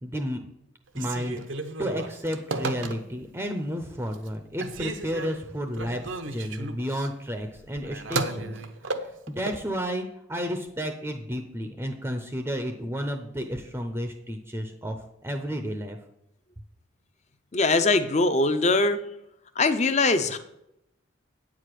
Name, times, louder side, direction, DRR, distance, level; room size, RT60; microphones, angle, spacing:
voice 1, 0.0-0.4 0.9-1.4 1.8-8.5 9.3-16.0, equal, 10° right, 5 dB, 0.6 m, -32 dB
Telephone, 0.9-3.4 3.8-4.3 4.6-9.6, right 3 dB, 75° right, 0.9 m, -34 dB
voice 2, 17.5-19.0 19.6-20.4, left 3 dB, 35° left, 10 dB, 0.6 m, -22 dB
9.0 x 4.9 x 7.6 m, 0.82 s
head